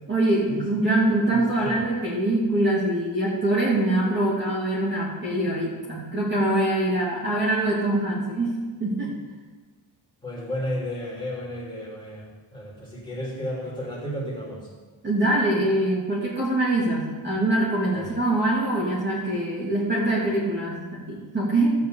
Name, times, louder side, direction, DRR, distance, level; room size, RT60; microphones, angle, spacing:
voice 1, 0.1-9.1 15.0-21.7, right 1 dB, 25° right, -6 dB, 2.4 m, -24 dB
voice 2, 1.3-1.8 10.2-14.7 17.9-18.1, equal, 10° left, -6 dB, 3.2 m, -33 dB
14.0 x 4.7 x 8.2 m, 1.3 s
wide cardioid pair, 175°, 43 cm